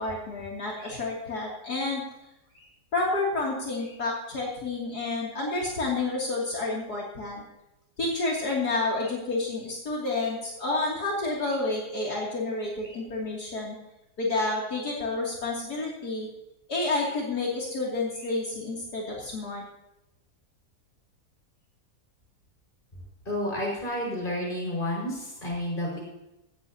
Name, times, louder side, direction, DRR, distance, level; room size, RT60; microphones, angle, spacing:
voice 1, 0.0-2.0 2.5-2.7 2.9-7.4 8.0-13.8 14.2-16.3 16.7-19.6, left 2 dB, 70° left, -4 dB, 3.4 m, -30 dB
voice 2, 23.2-26.0, left 1 dB, 30° left, -3 dB, 5.8 m, -30 dB
17.5 x 16.5 x 2.9 m, 0.91 s
omnidirectional pair, 1.8 m